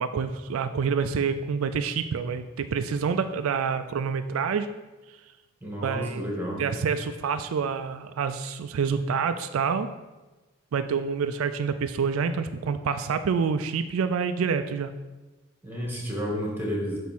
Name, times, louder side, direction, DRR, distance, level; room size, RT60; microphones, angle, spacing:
voice 1, 0.0-4.7 5.1-5.2 5.8-6.3 6.6-9.9 10.7-14.9, right 6 dB, 85° right, 10 dB, 0.4 m, -27 dB
voice 2, 5.6-6.6 15.6-17.0, equal, 10° right, -3 dB, 1.8 m, -31 dB
8.3 x 3.5 x 6.0 m, 1.2 s
head